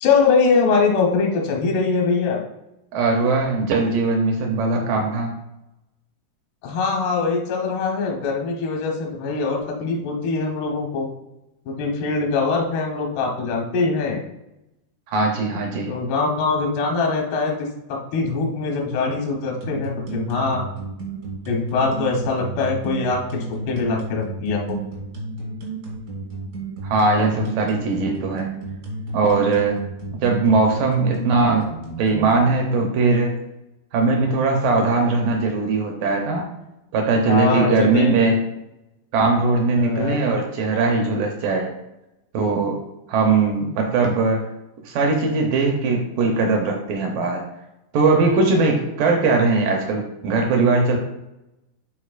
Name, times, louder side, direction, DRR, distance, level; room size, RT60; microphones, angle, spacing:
voice 1, 0.0-2.4 6.6-11.1 11.7-14.2 15.9-20.7 21.5-24.8 37.2-38.1 39.8-40.2, left 4 dB, 85° left, 0 dB, 3.1 m, -22 dB
voice 2, 2.9-5.3 15.1-15.9 26.8-28.5 29.1-29.8 30.1-31.7 32.0-33.4 33.9-36.5 36.9-38.4 39.1-41.7 42.3-42.8 43.1-44.5 44.9-47.4 47.9-51.0, right 3 dB, 75° right, 1 dB, 2.1 m, -20 dB
sound 1, 19.6-32.4, right 3 dB, 60° right, 0.9 m, -32 dB
10.5 x 4.2 x 2.4 m, 0.91 s
omnidirectional pair, 4.6 m